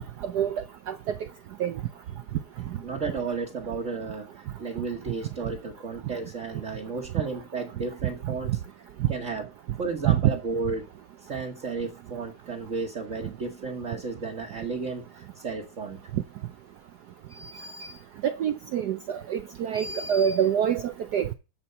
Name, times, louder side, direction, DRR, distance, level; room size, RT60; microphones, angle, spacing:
voice 1, 0.2-0.6 0.9-1.0 1.6-1.7 10.1-10.2 17.4-17.9 18.2-21.3, right 9 dB, 75° right, 0.9 m, -26 dB
voice 2, 2.8-8.6 9.1-9.5 9.8-10.9 11.3-16.0, right 4 dB, 40° right, 1.4 m, -33 dB
13.0 x 4.5 x 6.9 m
omnidirectional pair, 2.4 m